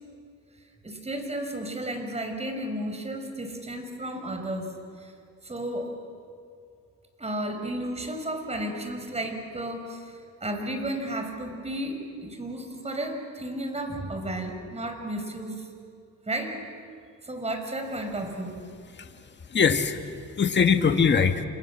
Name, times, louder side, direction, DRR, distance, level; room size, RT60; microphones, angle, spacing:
voice 1, 0.8-5.1 5.4-6.0 7.2-15.7 16.3-16.6 17.2-18.6, right 1 dB, 20° right, 5 dB, 5.6 m, -33 dB
voice 2, 19.5-21.4, left 6 dB, 35° left, 7 dB, 1.8 m, -22 dB
28.0 x 28.0 x 7.6 m, 2.4 s
cardioid pair, 90°, 30 cm